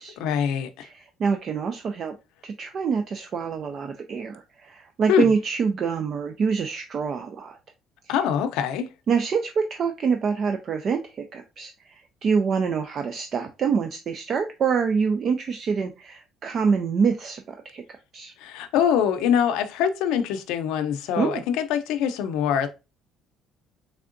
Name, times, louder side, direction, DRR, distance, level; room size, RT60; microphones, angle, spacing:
voice 1, 0.2-0.9 5.1-5.2 8.1-8.9 18.4-22.7, left 8 dB, 85° left, 0.5 m, -24 dB
voice 2, 0.8-2.1 2.4-7.6 8.0-8.1 9.1-17.8 18.1-18.3 21.2-21.4, right 5 dB, 35° right, 0.3 m, -26 dB
3.6 x 3.3 x 2.5 m
cardioid pair, 165°, 0 cm